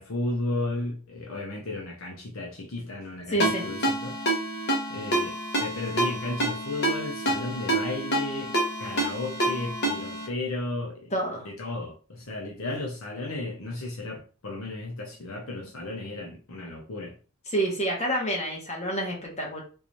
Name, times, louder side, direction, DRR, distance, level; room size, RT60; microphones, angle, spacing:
voice 1, 0.0-4.1 4.9-11.1 11.4-17.2, left 2 dB, 65° left, 0.8 m, -34 dB
voice 2, 3.3-3.7 11.1-11.5 17.5-19.6, right 1 dB, 30° left, 1.3 m, -28 dB
Ringtone, 3.4-10.3, right 1 dB, 50° left, 1.3 m, -28 dB
3.8 x 2.6 x 3.1 m
head